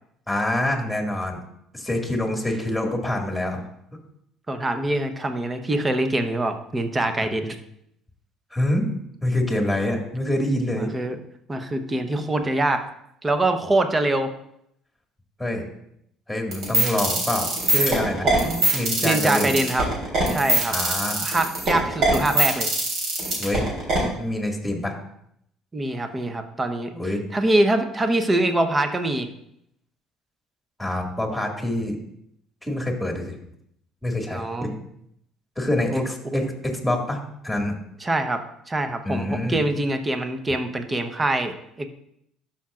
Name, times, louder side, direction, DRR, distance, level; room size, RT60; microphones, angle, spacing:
voice 1, 0.3-1.4 1.7-3.6 7.2-7.3 8.5-8.9 9.2-10.9 15.4-15.7 16.3-18.3 18.7-19.5 20.7-21.2 23.4-23.7 24.2-24.9 26.9-27.2 30.8-32.0 32.6-33.4 34.0-34.7 35.6-37.8 39.0-39.6, left 1 dB, ahead, 2 dB, 2.2 m, -26 dB
voice 2, 4.5-7.6 10.8-11.2 11.5-12.8 13.2-14.3 18.2-18.7 19.0-19.9 20.3-20.7 21.2-22.7 25.7-26.9 27.3-29.3 34.3-34.7 35.9-36.0 36.3-36.5 38.0-41.9, right 2 dB, 25° right, 8 dB, 0.9 m, -24 dB
sound 1, 16.5-24.0, right 2 dB, 60° right, 3.4 m, -22 dB
12.5 x 5.9 x 2.5 m, 0.74 s
hypercardioid pair, 65°, 0 cm